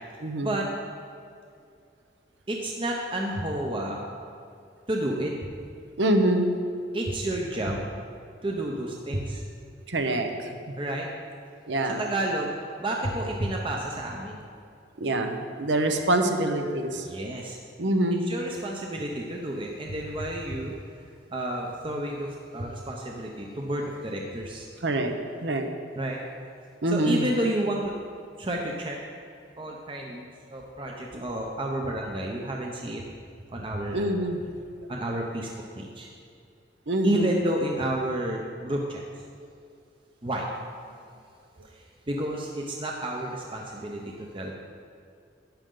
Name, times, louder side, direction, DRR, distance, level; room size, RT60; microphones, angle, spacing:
voice 1, 2.5-4.0 4.9-5.3 6.9-7.9 8.4-9.4 10.8-11.1 11.8-12.5 12.8-14.4 16.0-16.1 16.9-17.6 18.3-20.7 21.3-24.6 26.0-26.2 26.9-27.9 28.4-29.0 29.6-30.2 30.5-33.0 33.5-34.1 34.9-35.5 35.8-36.1 37.0-39.0 40.2-40.5 41.6-44.5, right 1 dB, 30° right, 0 dB, 0.8 m, -30 dB
voice 2, 6.0-6.5 9.9-10.6 11.7-12.0 15.0-17.1 17.8-18.2 24.8-25.1 25.4-25.7 26.8-27.3 33.9-34.4 36.9-37.4, right 1 dB, 75° right, 5 dB, 0.9 m, -25 dB
11.5 x 9.1 x 3.9 m, 2.4 s
head